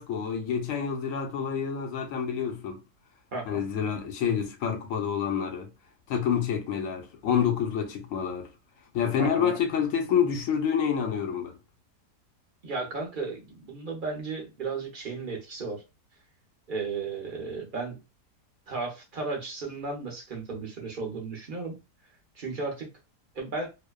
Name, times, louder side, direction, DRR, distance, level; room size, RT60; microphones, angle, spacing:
voice 1, 0.0-2.8 3.5-5.7 6.1-8.5 8.9-11.6, left 7 dB, 65° left, 0.9 m, -28 dB
voice 2, 9.2-9.6 12.6-15.8 16.7-18.0 18.7-21.8 22.4-22.9 23.4-23.7, right 4 dB, 50° right, 0.6 m, -34 dB
2.7 x 2.1 x 2.2 m
omnidirectional pair, 1.7 m